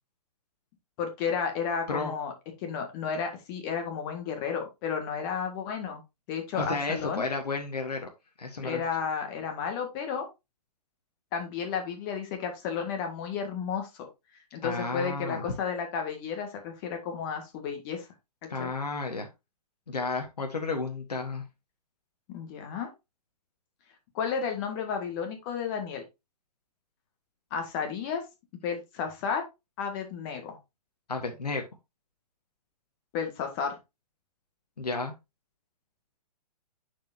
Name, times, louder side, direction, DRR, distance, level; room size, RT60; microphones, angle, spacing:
voice 1, 1.0-2.3 2.6-6.0 6.3-7.2 8.6-10.3 11.3-14.1 14.5-18.1 18.6-18.7 22.3-22.9 24.1-26.0 27.5-28.2 28.6-29.4 29.8-30.6 33.1-33.8, left 6 dB, 35° left, 5 dB, 1.8 m, -32 dB
voice 2, 6.5-8.1 8.4-8.8 14.6-15.4 18.5-19.3 19.9-21.4 31.1-31.6 34.8-35.1, left 3 dB, 75° left, 4 dB, 1.4 m, -32 dB
10.0 x 4.8 x 2.7 m, 0.23 s
figure-of-eight pair, 120°, 21 cm